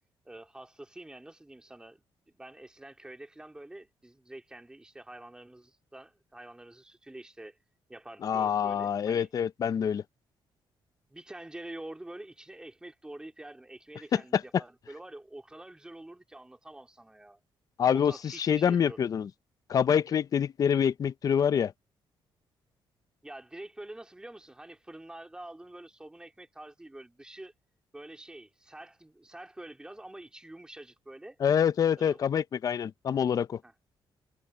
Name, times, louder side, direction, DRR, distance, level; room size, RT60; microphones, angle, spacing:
voice 1, 0.2-2.0 2.3-7.6 7.9-9.3 11.1-17.4 17.9-19.0 23.2-27.5 27.9-31.4 32.0-32.2 33.6-33.7, right 1 dB, 10° right, 3.1 m, -47 dB
voice 2, 8.2-10.0 14.1-14.4 17.8-19.3 19.7-21.7 31.4-33.6, left 8 dB, 40° left, 0.5 m, -26 dB
cardioid pair, 140°, 9 cm